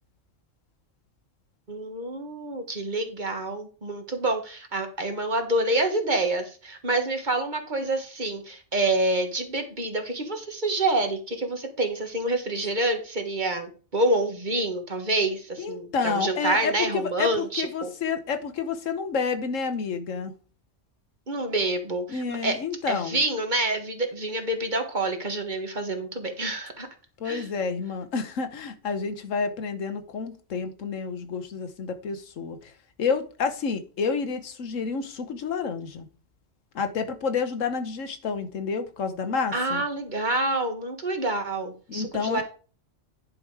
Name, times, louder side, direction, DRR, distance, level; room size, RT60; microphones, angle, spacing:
voice 1, 1.7-17.9 21.3-22.6 22.9-26.9 27.2-27.4 39.5-42.4, right 2 dB, 40° right, 1.5 m, -27 dB
voice 2, 15.6-20.3 22.1-23.2 27.2-32.7 33.0-36.1 36.7-39.8 41.9-42.4, left 5 dB, 90° left, 1.4 m, -29 dB
10.5 x 5.1 x 4.7 m
omnidirectional pair, 1.3 m